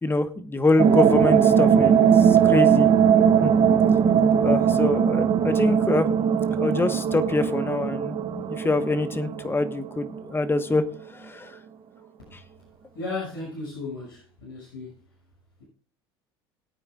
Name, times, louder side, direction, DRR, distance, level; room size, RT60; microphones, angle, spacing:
voice 1, 0.0-2.9 3.4-3.5 4.4-6.1 6.4-10.8 11.1-11.5, left 2 dB, 15° left, 10 dB, 1.3 m, -25 dB
sound 1, 0.8-10.2, right 8 dB, 45° right, 1.2 m, -20 dB
voice 2, 12.9-14.9, left 3 dB, 85° left, -5 dB, 6.6 m, -34 dB
20.5 x 8.8 x 2.4 m, 0.41 s
hypercardioid pair, 80°, 13 cm